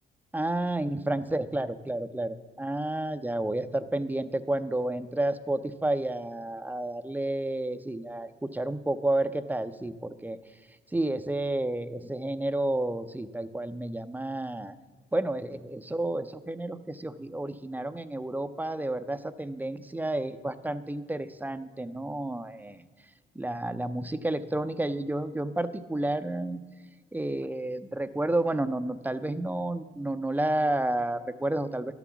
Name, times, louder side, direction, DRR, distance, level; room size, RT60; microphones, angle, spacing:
voice 1, 0.3-10.4 10.9-14.7 15.1-22.8 23.4-26.6 27.1-31.9, right 1 dB, 10° right, 12 dB, 0.5 m, -31 dB
11.5 x 6.0 x 7.0 m, 1.4 s
cardioid pair, 90°, 20 cm